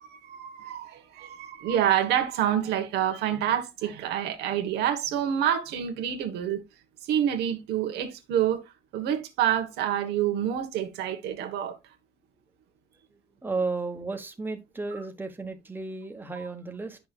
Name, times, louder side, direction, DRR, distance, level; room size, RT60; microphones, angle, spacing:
voice 1, 0.0-6.6 7.0-8.6 8.9-11.8 16.4-16.5, right 10 dB, 80° right, 1.3 m, -27 dB
voice 2, 13.1-17.0, right 3 dB, 10° right, 1.3 m, -34 dB
9.5 x 5.9 x 2.4 m
cardioid pair, 110°, 17 cm